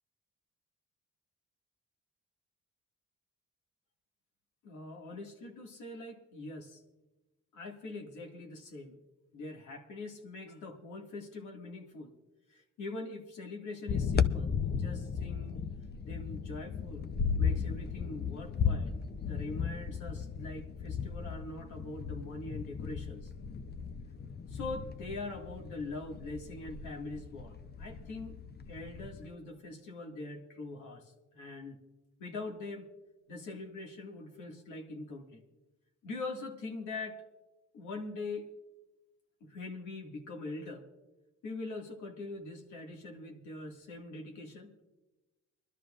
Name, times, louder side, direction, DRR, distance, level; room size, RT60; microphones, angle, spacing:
voice 1, 4.6-6.8 7.5-9.0 9.3-12.1 12.5-15.7 16.0-17.1 17.4-23.3 24.5-28.4 28.7-31.8 32.2-32.9 33.3-35.4 36.0-37.2 37.7-38.5 39.4-40.8 41.4-44.8, left 2 dB, 75° left, 1 dB, 2.1 m, -43 dB
sound 1, 13.9-29.3, left 6 dB, 35° left, 0.6 m, -35 dB
24.5 x 12.5 x 2.5 m, 1.1 s
cardioid pair, 90°, 30 cm